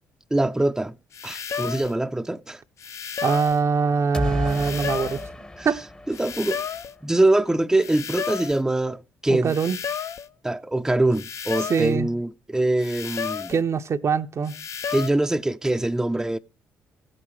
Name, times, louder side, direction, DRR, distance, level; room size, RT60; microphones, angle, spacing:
voice 1, 0.3-0.9 1.2-2.6 5.6-5.7 6.1-6.6 7.0-9.5 10.4-13.5 14.9-16.4, right 2 dB, 10° right, 0.5 m, -23 dB
sound 1, 1.1-2.0 2.8-3.6 4.5-5.3 6.1-7.0 7.8-8.6 9.5-10.3 11.1-12.0 12.8-13.6 14.5-15.1, left 7 dB, 50° left, 0.5 m, -32 dB
voice 2, 3.2-5.2 5.6-5.8 9.3-9.8 11.6-12.1 13.5-14.5, right 5 dB, 50° right, 0.6 m, -23 dB
sound 2, 4.1-7.0, left 2 dB, 15° left, 0.8 m, -32 dB
16.5 x 8.8 x 3.1 m
hypercardioid pair, 45°, 6 cm